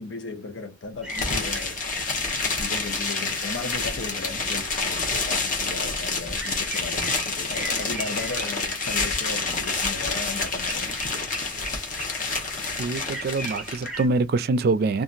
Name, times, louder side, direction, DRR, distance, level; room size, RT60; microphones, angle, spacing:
voice 1, 0.0-1.8 2.5-11.0, left 3 dB, 70° left, 0.7 m, -36 dB
sound 1, 1.0-14.1, right 1 dB, 5° right, 0.8 m, -40 dB
sound 2, 1.1-13.9, left 3 dB, 45° left, 0.9 m, -28 dB
voice 2, 12.8-15.0, right 3 dB, 55° right, 0.4 m, -24 dB
2.9 x 2.4 x 2.4 m
head